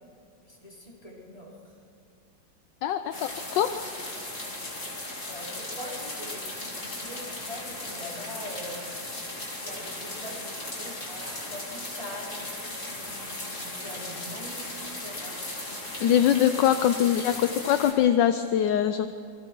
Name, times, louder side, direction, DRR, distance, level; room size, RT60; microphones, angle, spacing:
voice 1, 0.4-1.5 5.3-9.0 9.6-15.4 17.0-17.1 17.5-17.6, left 1 dB, 15° left, -4 dB, 4.2 m, -43 dB
voice 2, 2.8-3.8 16.0-19.1, left 10 dB, 75° left, 10 dB, 1.3 m, -23 dB
sound 1, 3.1-17.9, left 2 dB, 40° left, 3.1 m, -37 dB
27.0 x 21.5 x 4.6 m, 2.4 s
omnidirectional pair, 2.1 m